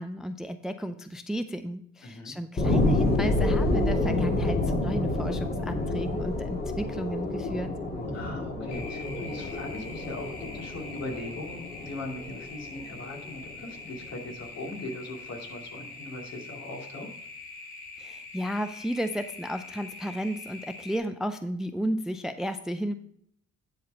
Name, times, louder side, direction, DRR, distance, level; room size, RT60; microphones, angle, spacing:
voice 1, 0.0-7.7 18.0-22.9, equal, ahead, 9 dB, 0.4 m, -33 dB
voice 2, 2.0-2.3 8.1-17.1, left 2 dB, 60° left, 0 dB, 2.5 m, -40 dB
sound 1, 2.6-13.6 14.0-14.1, left 2 dB, 30° left, 1.9 m, -28 dB
sound 2, 8.7-21.0, left 3 dB, 90° left, 2.3 m, -44 dB
10.5 x 4.1 x 5.3 m, 0.68 s
cardioid pair, 90°, 30 cm